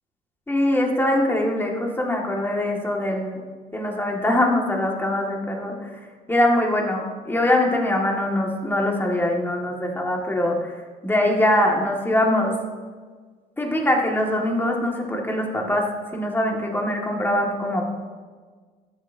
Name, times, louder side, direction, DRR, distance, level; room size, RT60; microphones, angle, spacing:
voice 1, 0.5-3.4 3.7-5.8 6.3-10.8 11.0-12.5 13.6-17.9, left 1 dB, 10° left, 0 dB, 2.0 m, -22 dB
14.5 x 10.5 x 2.8 m, 1.5 s
cardioid pair, 110°, 17 cm